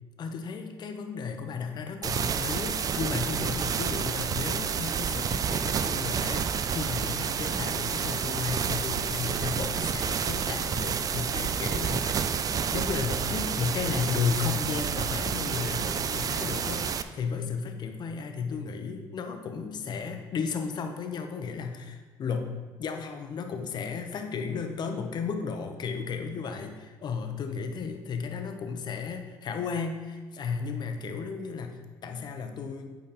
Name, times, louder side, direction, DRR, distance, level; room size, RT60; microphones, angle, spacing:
voice 1, 0.2-12.3 12.7-32.9, left 5 dB, 50° left, 5 dB, 0.9 m, -34 dB
sound 1, 2.0-17.0, right 7 dB, 40° right, 0.4 m, -29 dB
8.8 x 4.1 x 4.2 m, 1.4 s
supercardioid pair, 90°, 10 cm